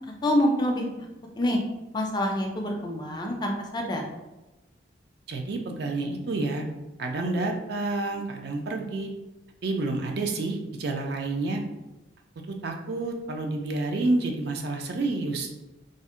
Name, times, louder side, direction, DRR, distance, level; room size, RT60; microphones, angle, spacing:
voice 1, 0.2-1.1 1.4-1.6 1.9-4.0, left 1 dB, 20° left, 1 dB, 0.3 m, -26 dB
voice 2, 5.3-6.6 7.0-9.1 9.6-11.6 12.5-15.5, right 2 dB, 55° right, 3 dB, 0.4 m, -29 dB
2.6 x 2.1 x 3.6 m, 1.0 s
head